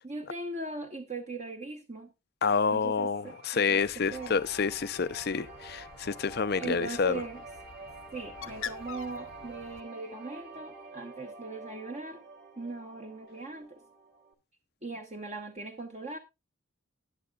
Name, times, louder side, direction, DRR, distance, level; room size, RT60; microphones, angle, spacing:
voice 1, 0.0-2.1 2.7-4.4 6.6-7.4 8.1-12.2 12.6-13.8 14.8-16.2, right 3 dB, 35° right, 1.0 m, -39 dB
voice 2, 2.4-7.2, left 5 dB, 45° left, 0.5 m, -28 dB
sound 1, 3.3-14.3, right 3 dB, 55° right, 2.1 m, -48 dB
Bird, 3.7-9.8, left 7 dB, 75° left, 0.9 m, -47 dB
20.0 x 7.1 x 2.4 m
head